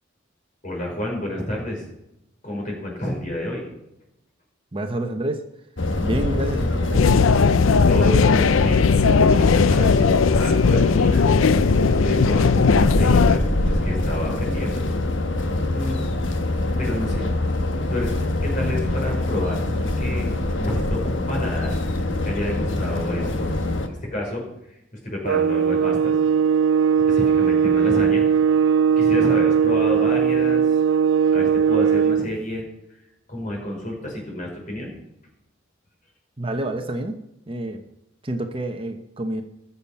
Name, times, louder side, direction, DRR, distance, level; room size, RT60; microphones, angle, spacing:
voice 1, 0.6-1.8 2.4-3.6 7.9-11.2 12.0-14.8 15.7-16.0 16.8-17.2 17.9-18.2 18.4-20.3 20.6-26.3 27.1-28.2 29.0-30.9 31.3-32.6 33.3-34.9, left 1 dB, 40° left, -1 dB, 5.4 m, -30 dB
voice 2, 4.7-5.4 6.0-7.1 36.4-37.2 37.5-37.8 38.2-39.4, right 1 dB, 25° right, 5 dB, 0.9 m, -28 dB
sound 1, 5.8-23.9, left 1 dB, 70° left, 1.4 m, -24 dB
sound 2, 6.9-13.4, left 5 dB, 90° left, 0.5 m, -18 dB
sound 3, 25.3-32.3, right 7 dB, 80° right, 0.5 m, -19 dB
21.0 x 7.2 x 5.8 m, 0.85 s
head